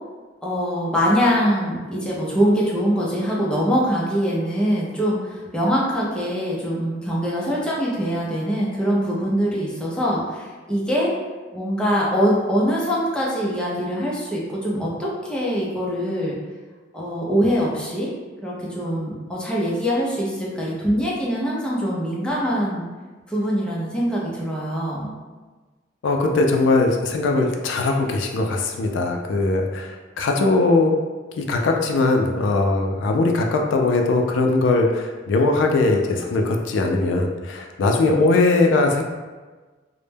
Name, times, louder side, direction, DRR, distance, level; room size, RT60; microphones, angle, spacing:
voice 1, 0.4-11.1 11.5-16.4 16.9-18.1 18.4-22.8 23.3-25.1, equal, 5° left, -6 dB, 0.4 m, -23 dB
voice 2, 26.0-30.9 31.4-39.0, left 3 dB, 75° left, 3 dB, 0.3 m, -20 dB
2.1 x 2.0 x 3.2 m, 1.3 s
head